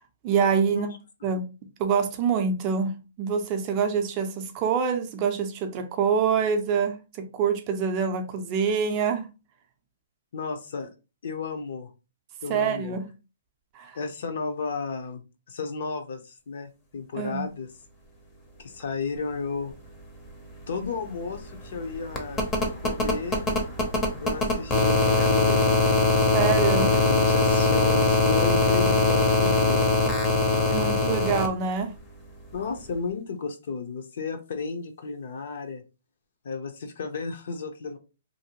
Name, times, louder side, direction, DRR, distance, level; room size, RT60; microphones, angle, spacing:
voice 1, 0.2-0.9 1.2-1.4 1.8-9.3 12.5-13.1 13.7-14.0 17.1-17.5 26.3-27.0 30.7-31.9, right 6 dB, 25° right, 0.4 m, -25 dB
voice 2, 10.3-10.9 11.2-11.9 12.4-13.0 13.9-15.2 15.5-17.7 18.6-19.7 20.7-22.5 22.8-23.4 24.2-25.8 26.9-29.9 30.5-31.2 32.5-35.8 36.4-38.0, left 4 dB, 60° left, 0.6 m, -33 dB
sound 1, 20.2-20.3 20.6-31.5 32.9-33.0, left 3 dB, 15° left, 0.6 m, -22 dB
2.6 x 2.5 x 2.9 m
hypercardioid pair, 160°, 0 cm